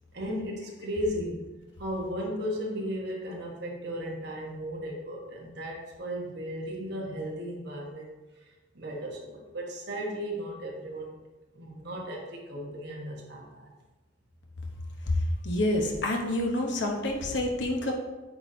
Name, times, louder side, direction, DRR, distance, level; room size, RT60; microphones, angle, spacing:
voice 1, 0.1-1.5 1.8-8.1 8.7-11.2 11.5-13.7, equal, 55° right, -1 dB, 1.2 m, -35 dB
voice 2, 15.4-17.9, left 1 dB, 60° left, 1 dB, 1.0 m, -28 dB
8.7 x 4.0 x 2.7 m, 1.1 s
head